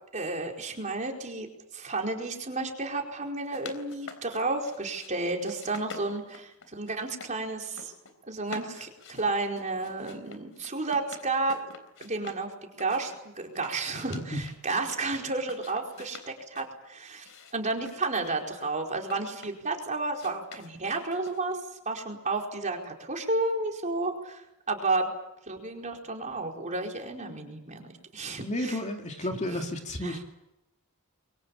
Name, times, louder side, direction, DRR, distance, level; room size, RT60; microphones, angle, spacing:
voice 1, 0.1-1.5 1.7-7.9 8.3-11.6 12.0-21.6 21.8-24.4 24.7-25.1 25.5-28.8 29.5-29.6 30.0-30.2, right 3 dB, 35° right, 2 dB, 4.7 m, -32 dB
sound 1, 3.3-5.1 5.4-7.3 7.6-8.1 8.4-12.4 12.8-15.0 15.4-16.7 17.2-19.7 20.1-21.6, left 4 dB, 65° left, 3.7 m, -47 dB
voice 2, 28.4-30.2, left 1 dB, 30° left, 4 dB, 2.5 m, -32 dB
27.5 x 23.5 x 7.3 m, 0.88 s
head